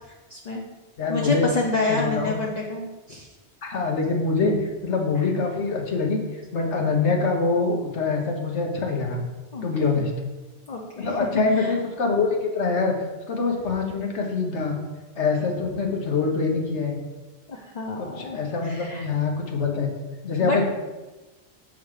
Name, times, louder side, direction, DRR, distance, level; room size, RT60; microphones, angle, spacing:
voice 1, 0.3-0.6 1.1-3.3 4.4-4.6 9.5-10.0 10.7-11.1 11.6-11.7 17.5-19.1 20.4-20.6, left 3 dB, 45° left, 0 dB, 0.7 m, -28 dB
voice 2, 1.0-1.4 1.9-2.3 3.6-4.5 4.8-6.2 6.5-9.2 9.6-10.1 11.0-12.9 13.3-14.8 15.2-17.0 18.0-19.9 20.2-20.6, left 4 dB, 80° left, 2 dB, 1.3 m, -24 dB
7.1 x 4.0 x 4.8 m, 1.2 s
omnidirectional pair, 1.2 m